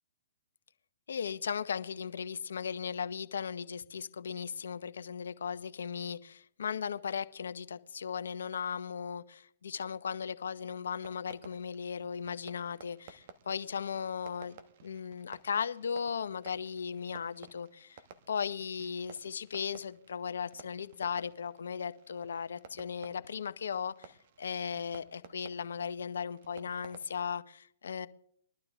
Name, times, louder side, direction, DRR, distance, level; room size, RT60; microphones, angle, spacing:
voice 1, 1.1-18.0 18.3-28.1, left 7 dB, 70° left, 0.8 m, -37 dB
Fireworks, 10.8-27.3, right 6 dB, 50° right, 1.2 m, -56 dB
21.0 x 11.5 x 3.6 m
hypercardioid pair, 125°, 0 cm